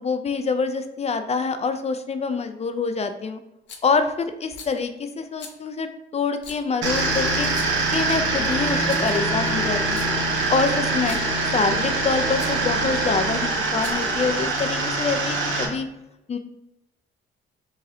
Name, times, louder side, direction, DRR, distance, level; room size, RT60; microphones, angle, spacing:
voice 1, 0.0-3.4 3.8-7.5 7.9-10.1 10.5-11.2 11.5-15.9 16.3-16.4, left 4 dB, 35° left, 8 dB, 0.4 m, -25 dB
Rattle, 3.7-4.0 4.5-4.8 5.4-5.6 6.4-6.6 7.4-7.9 8.6-9.3 9.8-10.1 10.9-11.4 12.4-12.6 13.6-14.2, left 5 dB, 65° left, 0.7 m, -42 dB
sound 1, 6.8-15.7, right 2 dB, 80° right, 1.1 m, -24 dB
4.8 x 3.1 x 2.7 m, 0.95 s
cardioid pair, 90°, 20 cm